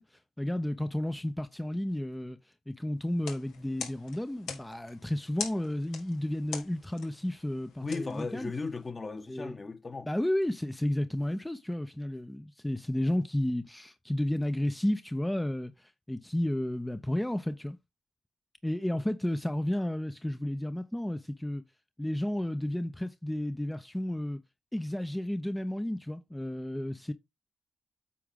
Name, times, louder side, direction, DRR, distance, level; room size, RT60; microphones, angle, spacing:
voice 1, 0.0-8.5 9.3-9.6 10.1-17.8 18.6-21.6 22.0-24.4 24.7-27.1, left 1 dB, 10° left, 0.7 m, -32 dB
sound 1, 3.1-8.9, left 6 dB, 85° left, 1.7 m, -44 dB
voice 2, 7.8-10.1, left 4 dB, 40° left, 1.5 m, -36 dB
8.6 x 4.6 x 3.7 m
supercardioid pair, 50°, 0 cm